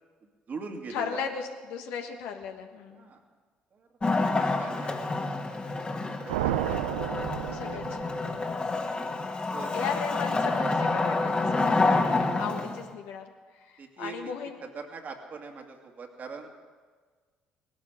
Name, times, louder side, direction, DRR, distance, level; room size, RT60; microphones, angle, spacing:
voice 1, 0.2-1.2 2.9-3.2 3.7-3.9 4.2-5.6 6.1-6.8 7.7-7.8 9.5-9.7 13.8-14.3 14.6-16.5, right 4 dB, 50° right, 2 dB, 2.2 m, -42 dB
voice 2, 0.9-3.1 7.5-8.6 9.3-9.4 9.7-13.2 13.5-14.5, left 6 dB, 80° left, 4 dB, 1.4 m, -36 dB
Wood, 4.0-12.9, left 3 dB, 30° left, 1.8 m, -28 dB
sound 1, 6.3-8.5, right 12 dB, 90° right, 0.4 m, -31 dB
18.0 x 12.0 x 5.2 m, 1.5 s
hypercardioid pair, 55°, 4 cm